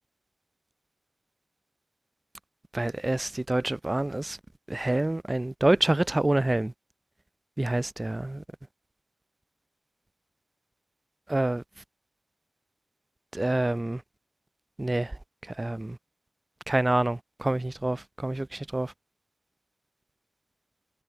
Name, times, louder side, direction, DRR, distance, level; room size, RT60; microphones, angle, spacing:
voice 1, 2.7-4.4 4.7-6.7 7.6-8.4 11.3-11.6 13.3-14.0 14.8-15.1 15.6-15.9 16.7-18.9, right 2 dB, 15° right, 0.6 m, -27 dB
wide cardioid pair, 165°, 0 cm